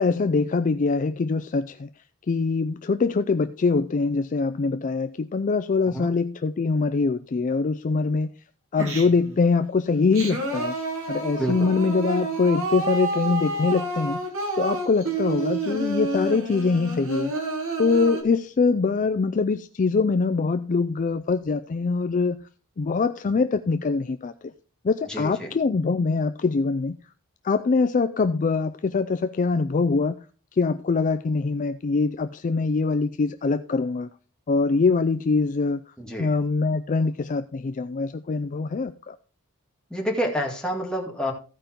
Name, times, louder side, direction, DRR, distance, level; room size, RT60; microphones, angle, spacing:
voice 1, 0.0-1.9 2.3-8.3 8.7-10.7 11.1-14.2 14.6-17.3 17.8-22.4 22.8-24.5 24.8-27.0 27.4-30.2 30.6-34.1 34.5-35.8 36.2-39.2, left 4 dB, 35° left, 10 dB, 0.4 m, -23 dB
Singing, 8.8-9.4 9.9-18.2, right 3 dB, 65° right, 2.9 m, -29 dB
voice 2, 11.4-11.8 25.1-25.5 36.0-36.3 39.9-41.3, equal, 5° left, -1 dB, 2.2 m, -28 dB
15.0 x 5.2 x 4.4 m, 0.37 s
head